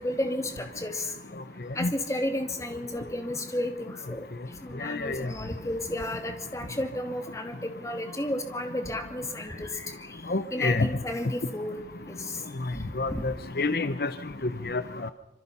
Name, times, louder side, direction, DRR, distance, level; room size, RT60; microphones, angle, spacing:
voice 1, 0.0-1.1 1.8-4.3 4.6-9.9 10.5-11.7 12.7-12.8, left 1 dB, 15° left, 6 dB, 2.5 m, -32 dB
voice 2, 4.8-5.3 10.3-10.9 13.0-14.1 14.7-15.1, left 3 dB, 55° left, 12 dB, 0.8 m, -28 dB
26.0 x 24.0 x 5.6 m, 0.85 s
head